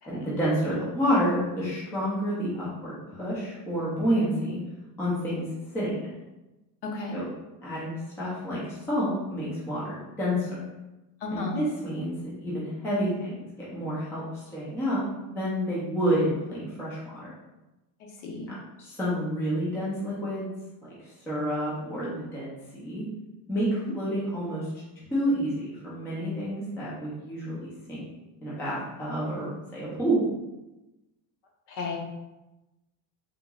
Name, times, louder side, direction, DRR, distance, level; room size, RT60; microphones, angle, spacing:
voice 1, 0.1-4.6 5.0-5.5 5.7-6.1 7.1-7.2 7.6-10.6 11.3-13.4 13.7-15.0 15.3-17.3 18.8-20.5 21.0-23.1 23.5-24.7 25.1-28.0 28.4-30.2, equal, 5° left, -8 dB, 0.4 m, -29 dB
voice 2, 6.8-7.2 11.2-11.6 18.2-18.5 31.7-32.0, left 3 dB, 55° left, 1 dB, 0.8 m, -33 dB
3.6 x 2.9 x 2.3 m, 1.0 s
cardioid pair, 150°, 50 cm